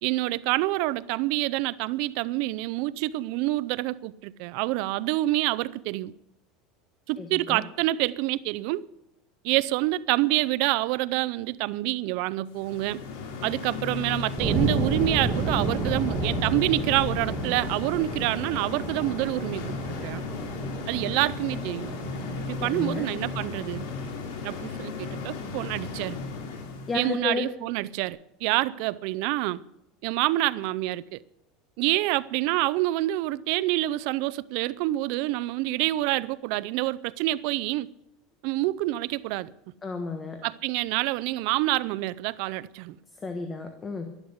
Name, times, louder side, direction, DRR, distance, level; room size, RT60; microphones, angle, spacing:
voice 1, 0.0-6.1 7.1-8.8 9.4-13.0 13.4-20.2 20.9-22.0 22.5-23.9 24.4-26.2 26.9-29.6 30.0-31.2 31.8-37.9 38.4-39.5 40.4-43.0, right 17 dB, 60° right, 0.5 m, -27 dB
voice 2, 7.2-7.6 22.6-23.1 26.9-27.5 39.8-40.4 43.2-44.1, left 4 dB, 20° left, 1.3 m, -32 dB
sound 1, 12.5-27.1, left 4 dB, 85° left, 2.8 m, -35 dB
sound 2, 14.4-25.1, right 2 dB, 30° right, 2.4 m, -32 dB
12.0 x 11.5 x 8.0 m
cardioid pair, 155°, 0 cm